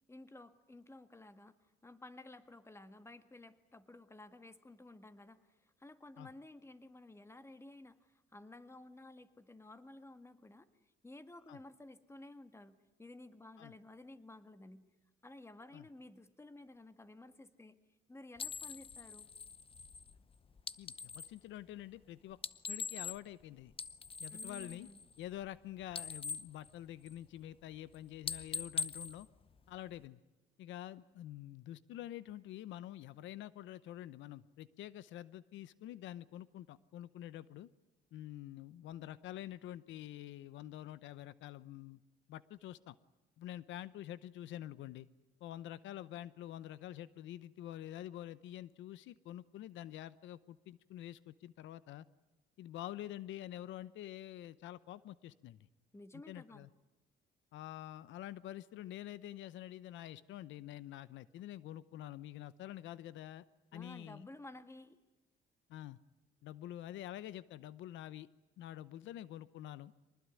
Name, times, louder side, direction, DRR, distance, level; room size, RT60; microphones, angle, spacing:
voice 1, 0.1-1.5 1.8-5.5 5.8-10.7 11.0-14.8 15.2-17.8 18.1-19.3 24.3-25.0 55.9-56.7 63.7-65.0, left 2 dB, 15° left, 10 dB, 1.8 m, -54 dB
sound 1, 18.4-21.4 22.3-23.4 23.7-25.6 25.8-27.4 27.7-28.0 28.2-30.1, left 5 dB, 30° left, 0.8 m, -43 dB
voice 2, 20.8-22.4 22.7-23.7 24.2-24.9 25.2-29.3 29.7-30.2 30.6-37.7 38.1-42.0 42.3-43.0 43.4-45.1 45.4-52.0 52.6-55.6 56.3-56.7 57.5-63.4 63.7-64.3 65.7-66.0 66.4-68.3 68.6-69.9, left 13 dB, 80° left, 17 dB, 0.8 m, -47 dB
24.0 x 20.0 x 9.7 m, 1.0 s
cardioid pair, 95°, 19 cm